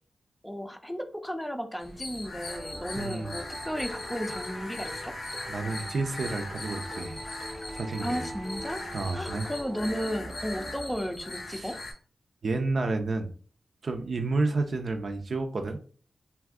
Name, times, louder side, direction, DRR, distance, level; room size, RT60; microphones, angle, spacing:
voice 1, 0.4-5.1 8.0-8.8 9.1-11.8, equal, 5° left, 6 dB, 0.5 m, -34 dB
sound 1, 1.8-11.9, left 2 dB, 90° left, 0.8 m, -40 dB
sound 2, 2.5-11.4, right 1 dB, 25° right, 0.8 m, -42 dB
voice 2, 3.0-3.4 5.5-7.2 7.7-8.2 8.9-9.5 11.5-11.7 12.4-13.3 13.8-15.8, right 3 dB, 70° right, 5 dB, 0.4 m, -30 dB
sound 3, 3.7-9.4, left 2 dB, 60° left, 0.7 m, -49 dB
2.6 x 2.4 x 3.4 m, 0.43 s
cardioid pair, 45°, 0 cm